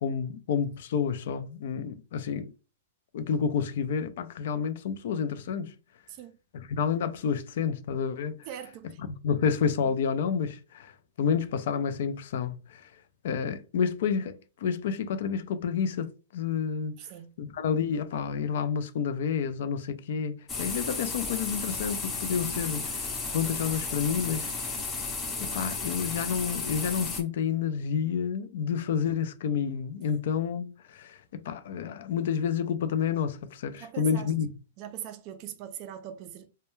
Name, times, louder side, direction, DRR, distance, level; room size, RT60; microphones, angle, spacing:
voice 1, 0.0-2.5 3.1-5.7 6.7-8.5 9.1-12.9 13.2-17.0 17.4-23.0 23.3-24.9 25.4-34.5, left 7 dB, 65° left, 0.4 m, -29 dB
voice 2, 8.5-9.0 17.0-17.3 33.8-34.3 34.8-36.5, right 10 dB, 40° right, 0.3 m, -41 dB
sound 1, 20.5-27.2, left 4 dB, 15° left, 0.6 m, -33 dB
2.2 x 2.1 x 3.0 m
hypercardioid pair, 140°, 0 cm